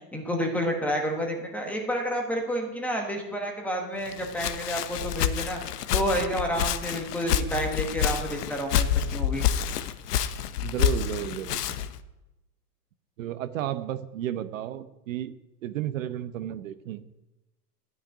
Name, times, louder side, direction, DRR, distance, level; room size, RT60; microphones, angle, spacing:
voice 1, 0.1-5.6 5.9-9.4, equal, 5° left, 2 dB, 1.1 m, -29 dB
Walk footsteps, 4.0-12.0, left 9 dB, 85° left, 1.1 m, -28 dB
voice 2, 10.6-11.7 13.2-17.0, right 12 dB, 55° right, 13 dB, 0.9 m, -33 dB
13.5 x 6.6 x 9.9 m, 0.99 s
supercardioid pair, 170°, 46 cm